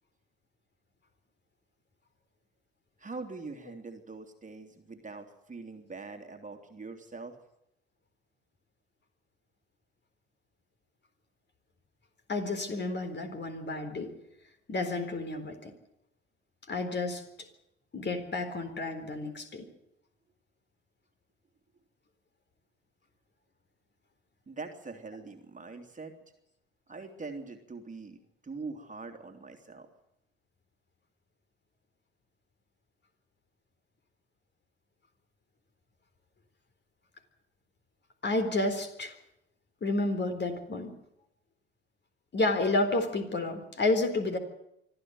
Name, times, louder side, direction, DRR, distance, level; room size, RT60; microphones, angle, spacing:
voice 1, 3.0-7.4 24.5-26.3 26.9-28.2 28.4-29.9, right 3 dB, 25° right, 5 dB, 3.0 m, -43 dB
voice 2, 12.3-14.1 14.7-15.7 16.7-17.5 17.9-19.7 38.2-39.2 39.8-41.0 42.3-44.4, left 2 dB, 30° left, 6 dB, 4.1 m, -30 dB
25.0 x 13.5 x 9.5 m, 0.82 s
figure-of-eight pair, 55°, 34 cm